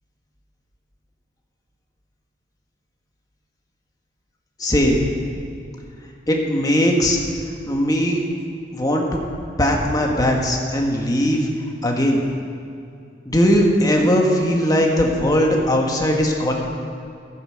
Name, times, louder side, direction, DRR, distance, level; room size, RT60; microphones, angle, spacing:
voice 1, 4.6-5.0 6.3-7.2 7.7-8.2 8.7-9.2 9.6-11.5 11.8-12.2 13.3-16.5, equal, 20° left, 0 dB, 1.7 m, -19 dB
15.0 x 9.3 x 6.6 m, 2.5 s
head